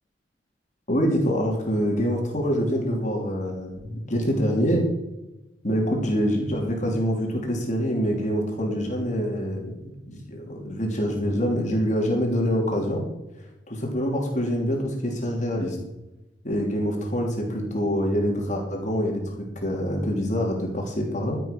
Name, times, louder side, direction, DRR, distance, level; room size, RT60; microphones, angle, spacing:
voice 1, 0.9-4.8 5.6-9.8 10.1-13.0 13.7-15.8 16.4-21.4, equal, 45° left, 0 dB, 3.0 m, -25 dB
14.5 x 7.7 x 5.3 m, 0.97 s
head